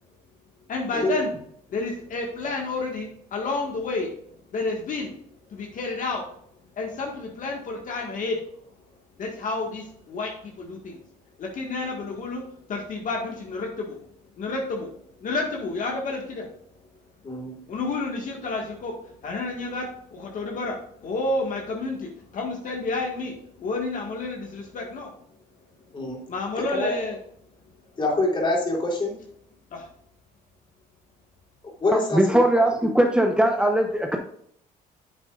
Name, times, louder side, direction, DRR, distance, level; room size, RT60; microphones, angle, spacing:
voice 1, 0.7-1.3 1.7-4.1 4.5-5.1 5.5-6.2 6.8-8.4 9.2-11.0 11.4-12.4 12.7-14.0 14.4-14.9 15.2-16.5 17.7-25.1 26.3-27.2 29.7-29.9, left 3 dB, 50° left, 0 dB, 1.8 m, -30 dB
voice 2, 17.2-17.5 25.9-26.2 26.6-26.9 28.0-29.1 31.8-32.4, left 2 dB, 30° left, -2 dB, 3.6 m, -25 dB
voice 3, 31.9-34.2, right 1 dB, 5° right, 2 dB, 0.9 m, -20 dB
9.3 x 7.9 x 2.5 m, 0.67 s
cardioid pair, 110°, 17 cm